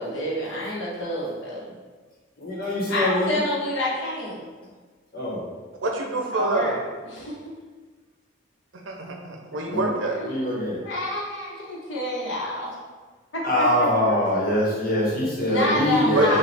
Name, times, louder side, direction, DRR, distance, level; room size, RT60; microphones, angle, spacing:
voice 1, 0.0-1.7 2.9-4.4 6.3-6.7 7.1-7.3 9.5-9.6 10.1-10.5 10.8-12.7 13.3-14.6 15.5-16.4, left 1 dB, 75° left, -5 dB, 1.1 m, -28 dB
voice 2, 2.4-3.3 5.1-5.4 9.7-9.8 10.2-10.8 13.4-16.4, left 1 dB, 50° left, -5 dB, 1.2 m, -23 dB
voice 3, 5.8-6.8 8.9-10.2 16.1-16.4, right 2 dB, 85° right, 1 dB, 0.7 m, -26 dB
5.1 x 2.4 x 3.4 m, 1.4 s
head